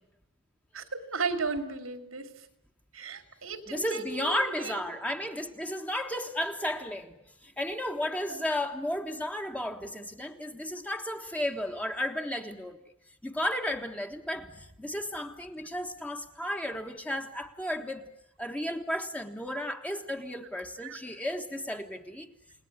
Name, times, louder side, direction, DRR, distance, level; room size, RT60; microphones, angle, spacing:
voice 1, 0.7-2.5 2.9-4.9 8.3-8.4 20.8-21.0, right 4 dB, 85° right, 7 dB, 3.0 m, -35 dB
voice 2, 3.7-12.8 13.2-18.1 18.4-22.3, left 1 dB, 5° left, 4 dB, 1.6 m, -33 dB
30.0 x 19.5 x 9.8 m, 0.83 s
head